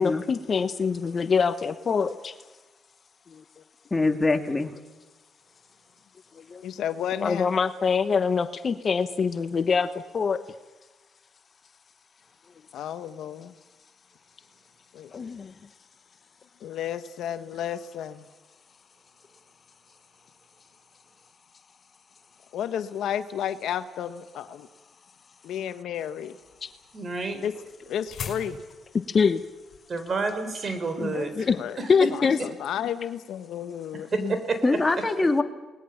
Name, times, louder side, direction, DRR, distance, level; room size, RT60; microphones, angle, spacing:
voice 1, 0.0-2.3 3.3-3.4 6.4-6.6 7.2-9.9 10.1-10.4 15.1-15.5 26.6-26.7 29.1-29.4 31.0-31.6 31.9-32.4 34.2-34.3, left 5 dB, 45° left, 10 dB, 1.0 m, -24 dB
voice 2, 3.9-4.7 34.6-35.4, left 3 dB, 20° left, 5 dB, 2.3 m, -23 dB
voice 3, 6.6-7.5 12.7-13.5 14.9-15.1 16.6-18.3 22.5-24.7 25.4-26.4 27.4-27.5 27.9-28.6 31.1-31.8 32.1-34.1 34.8-34.9, left 9 dB, 75° left, 10 dB, 1.2 m, -32 dB
sound 1, 26.4-31.6, left 6 dB, 60° left, 5.7 m, -42 dB
voice 4, 26.9-27.4 29.9-32.1 32.4-32.5 34.1-35.1, right 3 dB, 40° right, 9 dB, 4.0 m, -30 dB
28.5 x 20.0 x 7.2 m, 1.2 s
cardioid pair, 90°, 0 cm